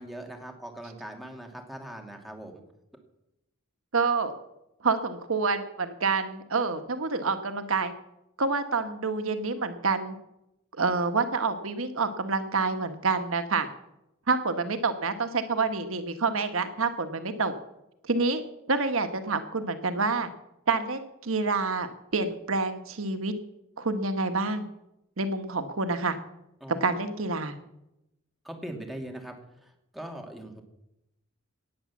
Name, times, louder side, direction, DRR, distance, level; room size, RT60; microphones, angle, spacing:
voice 1, 0.0-2.6 26.6-26.9 28.4-29.4 29.6-30.6, right 1 dB, ahead, 2 dB, 2.5 m, -41 dB
voice 2, 3.9-4.3 4.8-7.9 8.4-10.2 10.7-13.7 14.3-17.5 18.0-18.4 18.7-20.3 20.7-23.3 23.8-24.7 25.2-26.2 26.7-27.5, right 4 dB, 75° right, 9 dB, 1.3 m, -27 dB
18.0 x 8.5 x 7.2 m, 0.87 s
head